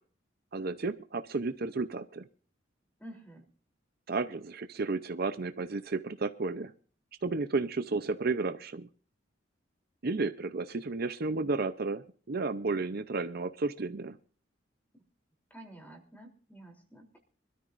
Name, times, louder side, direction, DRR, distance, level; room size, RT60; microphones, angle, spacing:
voice 1, 0.5-2.3 4.1-6.7 7.2-8.9 10.0-14.2, right 3 dB, 55° right, 10 dB, 0.7 m, -32 dB
voice 2, 3.0-3.5 15.5-17.2, right 1 dB, 10° left, 0 dB, 3.4 m, -50 dB
24.5 x 13.0 x 2.6 m, 0.43 s
head